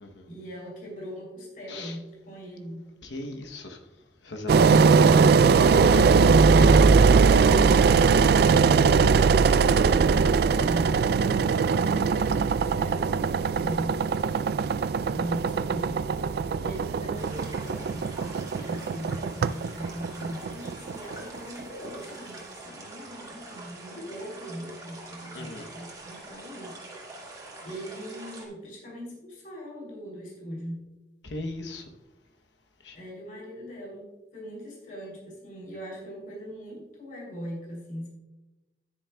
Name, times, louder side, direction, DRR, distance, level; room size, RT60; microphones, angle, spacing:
voice 1, 0.3-2.9 15.1-16.3 16.6-27.2 27.6-30.9 32.9-38.1, equal, 50° left, -2 dB, 3.0 m, -40 dB
voice 2, 3.1-3.8 4.2-4.9 5.8-6.1 25.3-25.7 31.2-31.8 32.9-33.0, left 1 dB, 90° left, 4 dB, 0.9 m, -36 dB
Engine, 4.5-21.4, right 5 dB, 60° right, 0.3 m, -20 dB
sound 1, 17.1-28.5, right 2 dB, 20° right, 1.8 m, -44 dB
10.5 x 10.0 x 2.3 m, 1.0 s
head